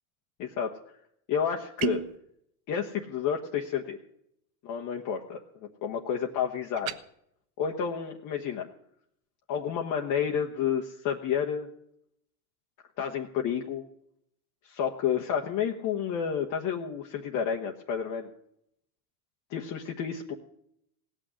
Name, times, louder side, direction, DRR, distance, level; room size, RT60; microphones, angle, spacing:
voice 1, 0.4-1.0 1.3-2.0 2.7-4.0 4.6-7.0 7.6-8.7 9.5-11.7 13.0-13.8 14.6-18.3 19.5-20.3, left 8 dB, 40° left, 1 dB, 1.3 m, -30 dB
sound 1, 1.8-2.2 6.8-7.0, right 15 dB, 50° right, 1.0 m, -32 dB
18.0 x 6.4 x 9.5 m, 0.74 s
supercardioid pair, 120°, 44 cm